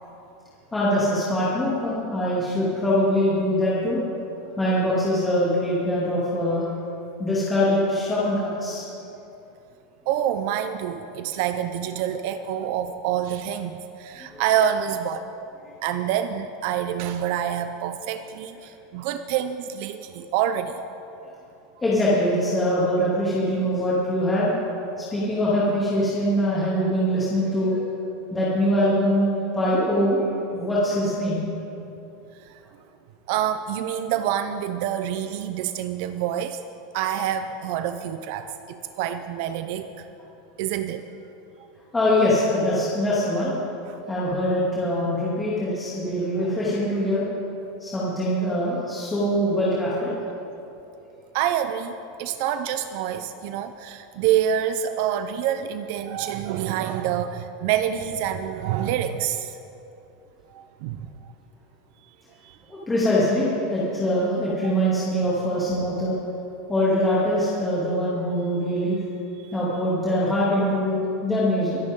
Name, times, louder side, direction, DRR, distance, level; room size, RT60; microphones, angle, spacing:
voice 1, 0.7-4.0 4.6-6.7 7.2-8.8 14.3-14.4 21.8-24.5 25.1-27.8 28.3-31.4 41.9-43.5 44.1-47.2 47.8-50.1 62.7-66.1 66.7-69.0 69.5-71.8, equal, 10° left, -8 dB, 2.6 m, -23 dB
voice 2, 10.1-15.3 15.8-20.8 32.5-32.6 33.3-36.6 36.9-40.1 40.6-41.1 43.9-44.0 51.3-51.9 52.2-59.6 60.5-61.1 62.4-62.6 69.4-69.5, right 10 dB, 60° right, 10 dB, 0.6 m, -27 dB
24.0 x 10.5 x 3.8 m, 2.8 s
supercardioid pair, 140°, 0 cm